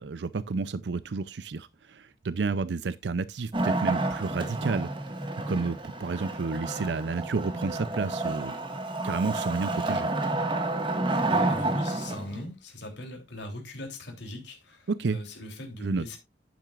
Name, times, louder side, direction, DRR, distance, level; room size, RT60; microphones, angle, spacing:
voice 1, 0.0-4.9 5.5-8.5 9.0-10.1 14.9-15.2 15.8-16.0, right 4 dB, 75° right, 0.5 m, -30 dB
Wood, 3.5-12.4, right 2 dB, 30° right, 1.6 m, -30 dB
voice 2, 11.3-16.2, left 1 dB, 85° left, 3.2 m, -40 dB
10.5 x 9.1 x 2.4 m
head